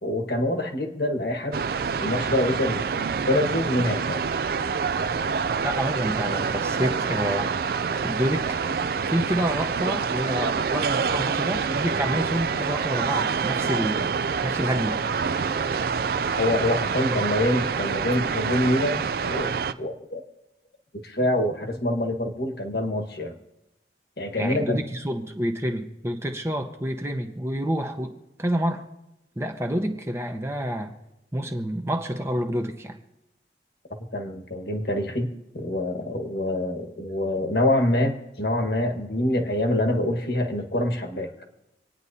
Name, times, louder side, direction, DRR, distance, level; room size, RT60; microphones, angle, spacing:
voice 1, 0.0-1.6 2.0-2.8 3.3-4.2 16.4-20.2 20.9-23.3 24.2-24.8 34.1-41.3, left 1 dB, 60° left, 4 dB, 1.5 m, -25 dB
sound 1, 1.5-19.7, right 5 dB, 55° right, 0.3 m, -26 dB
voice 2, 5.6-8.5 9.1-14.1 14.4-15.0 17.1-17.2 24.4-28.1 28.4-28.8 29.4-30.9 31.3-33.0, equal, 15° right, 5 dB, 0.8 m, -28 dB
27.0 x 9.6 x 2.8 m, 0.91 s
head